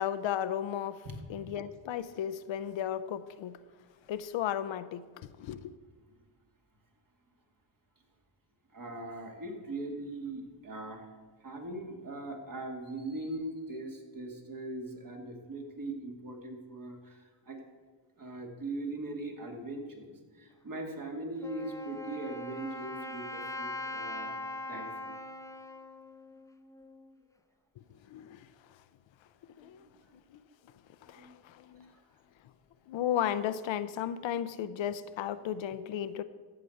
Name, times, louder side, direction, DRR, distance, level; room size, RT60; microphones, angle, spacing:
voice 1, 0.0-3.6 4.1-5.1 5.4-5.7 28.1-28.5 29.6-29.9 30.3-30.4 31.0-31.9 32.9-36.2, left 10 dB, 70° left, 13 dB, 0.7 m, -34 dB
voice 2, 8.7-11.1 11.4-17.6 18.2-24.4 24.7-25.2 29.6-29.7 29.9-30.0 31.0-31.4, right 2 dB, 45° right, 2 dB, 2.3 m, -40 dB
Wind instrument woodwind instrument, 21.4-27.1, left 2 dB, 5° left, 0.6 m, -41 dB
14.0 x 5.0 x 7.8 m, 1.5 s
cardioid pair, 90°, 47 cm